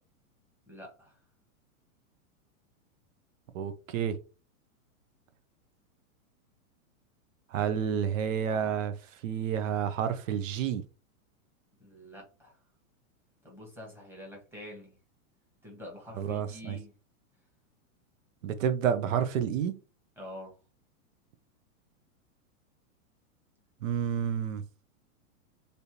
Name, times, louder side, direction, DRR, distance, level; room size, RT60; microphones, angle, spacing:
voice 1, 0.7-1.2 11.8-12.6 13.4-15.0 15.6-16.9 20.2-20.5, left 1 dB, 5° right, 1.3 m, -46 dB
voice 2, 3.5-4.2 7.5-8.9 9.2-10.8 16.2-16.8 18.4-19.8 23.8-24.6, right 8 dB, 65° right, 0.7 m, -29 dB
3.3 x 2.7 x 2.9 m
hypercardioid pair, 145°, 43 cm